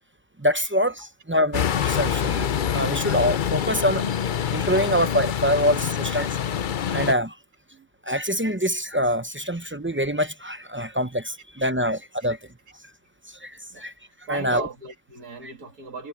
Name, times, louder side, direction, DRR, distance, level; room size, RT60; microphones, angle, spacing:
voice 1, 0.4-4.0 4.5-6.6 6.9-7.4 8.1-12.4 13.4-13.9 14.3-14.6 15.4-15.5, equal, 15° right, 0.4 m, -25 dB
sound 1, 1.5-7.1, left 8 dB, 55° left, 0.5 m, -26 dB
voice 2, 14.3-16.1, right 4 dB, 80° right, 3.0 m, -37 dB
omnidirectional pair, 1.6 m